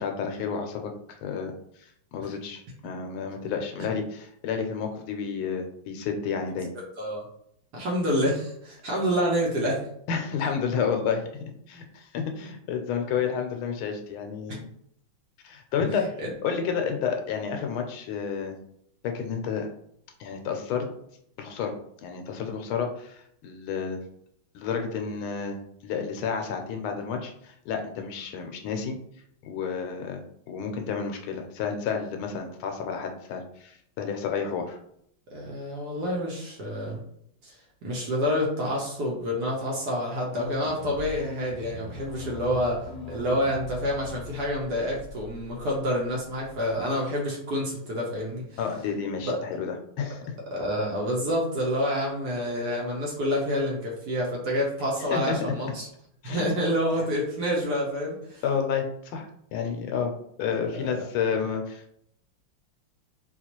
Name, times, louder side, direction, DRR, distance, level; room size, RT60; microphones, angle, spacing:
voice 1, 0.0-1.5 2.1-6.7 10.1-14.7 15.4-16.1 16.4-18.5 19.0-19.7 20.2-20.9 21.4-21.7 22.0-24.0 24.5-25.6 25.8-29.0 29.4-30.2 30.5-34.8 48.6-50.2 55.1-55.4 56.2-56.4 58.4-60.1 60.4-61.9, left 6 dB, 85° left, 4 dB, 1.4 m, -30 dB
voice 2, 7.7-9.8 16.2-16.3 35.3-37.0 37.4-37.6 37.8-42.8 43.1-48.6 49.2-49.4 50.5-55.9 56.2-58.4 60.5-61.0, equal, 60° right, -2 dB, 1.2 m, -28 dB
sound 1, 40.3-46.9, left 2 dB, 65° left, 1.1 m, -41 dB
4.2 x 2.4 x 2.9 m, 0.71 s
omnidirectional pair, 2.3 m